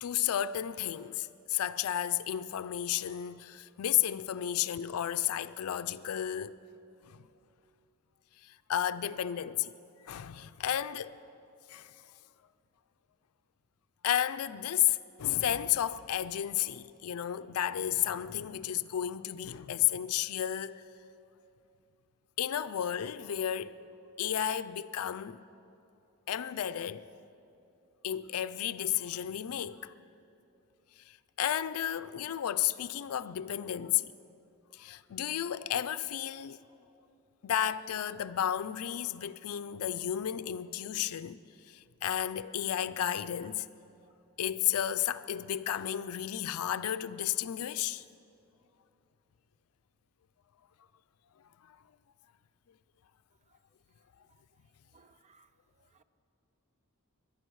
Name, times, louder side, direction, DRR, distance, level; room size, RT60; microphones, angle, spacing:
voice 1, 0.0-6.6 7.0-7.3 8.4-9.7 10.0-11.2 11.7-11.9 14.0-20.8 22.4-23.8 24.2-25.4 26.3-27.1 28.0-29.9 31.1-34.1 34.7-36.6 37.4-41.4 41.7-43.7 44.4-48.0 51.7-51.8, left 11 dB, 85° left, 0.4 m, -32 dB
voice 2, 54.9-55.5 55.8-56.0, right 4 dB, 30° right, 0.5 m, -64 dB
22.0 x 10.5 x 4.7 m
head